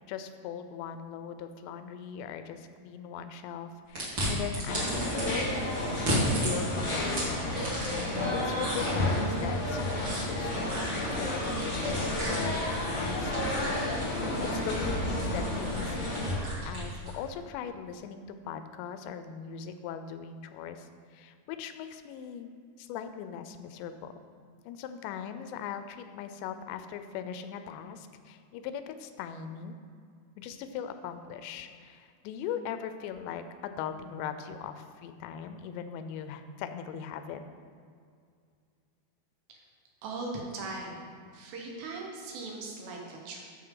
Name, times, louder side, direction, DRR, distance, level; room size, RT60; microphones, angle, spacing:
voice 1, 0.1-6.0 6.4-7.5 8.3-12.6 12.9-13.9 14.4-16.3 16.6-22.5 22.8-24.1 24.7-29.8 30.4-37.4, left 8 dB, 90° left, 9 dB, 2.9 m, -40 dB
sound 1, 4.0-5.3 5.9-8.2 8.6-17.2, equal, 35° right, 2.4 m, -35 dB
sound 2, 4.7-16.3, left 1 dB, 30° left, 1.6 m, -31 dB
voice 2, 40.0-41.0 41.3-43.4, right 3 dB, 80° right, 0 dB, 3.4 m, -39 dB
12.0 x 6.2 x 3.8 m, 2.2 s
omnidirectional pair, 5.0 m